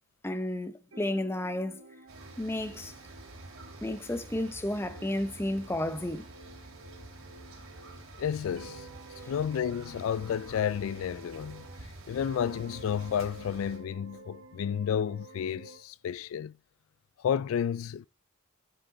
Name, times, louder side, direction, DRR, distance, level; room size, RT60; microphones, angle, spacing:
voice 1, 0.2-1.8 2.4-2.9 3.8-6.3 9.2-9.3, left 1 dB, 10° left, 0.7 m, -32 dB
sound 1, 0.9-8.1 8.5-11.9 12.2-15.8, right 3 dB, 70° right, 1.4 m, -51 dB
sound 2, 2.1-13.8, right 2 dB, 90° right, 3.3 m, -49 dB
voice 2, 8.2-8.9 9.3-11.7 12.1-16.5 17.2-18.1, left 8 dB, 90° left, 0.3 m, -31 dB
11.0 x 5.4 x 3.9 m
head